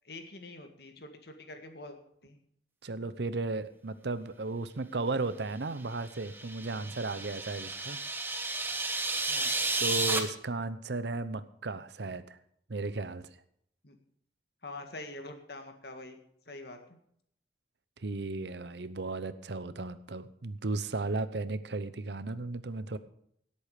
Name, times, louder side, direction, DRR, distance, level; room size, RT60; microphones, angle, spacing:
voice 1, 0.0-2.0 2.2-2.4 9.3-9.5 13.8-14.0 14.6-16.2 16.5-17.0, left 2 dB, 65° left, 5 dB, 1.9 m, -45 dB
voice 2, 2.8-8.0 9.8-12.4 12.7-13.3 18.0-23.0, right 3 dB, 80° right, 13 dB, 0.8 m, -35 dB
sound 1, 6.0-10.2, right 3 dB, 10° right, 1.2 m, -32 dB
17.5 x 8.4 x 5.0 m, 0.69 s
head